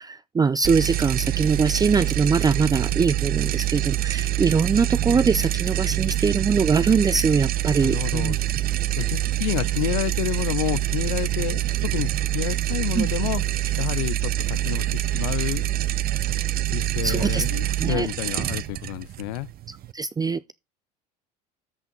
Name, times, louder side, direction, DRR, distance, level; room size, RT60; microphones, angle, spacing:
voice 1, 0.0-8.4 12.9-13.1 17.0-17.4 17.8-18.1 19.7-20.5, right 5 dB, 20° right, 0.5 m, -22 dB
sound 1, 0.6-19.9, right 13 dB, 50° right, 0.7 m, -25 dB
voice 2, 7.8-8.4 9.0-13.4 13.8-15.6 16.7-19.5, left 20 dB, 75° left, 0.5 m, -29 dB
13.5 x 5.6 x 4.5 m
hypercardioid pair, 75°, 20 cm